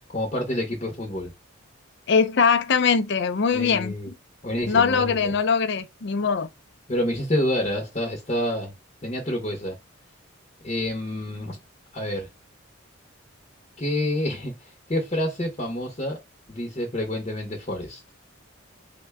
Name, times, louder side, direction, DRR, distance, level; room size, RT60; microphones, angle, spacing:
voice 1, 0.1-1.3 3.5-4.1 4.4-5.4 6.9-8.7 9.0-9.8 10.6-11.6 11.9-12.3 13.8-16.2 16.5-18.0, left 1 dB, 30° left, 0.8 m, -28 dB
voice 2, 2.1-4.1 4.7-6.5, left 5 dB, 55° left, 0.4 m, -22 dB
3.6 x 2.2 x 3.4 m
head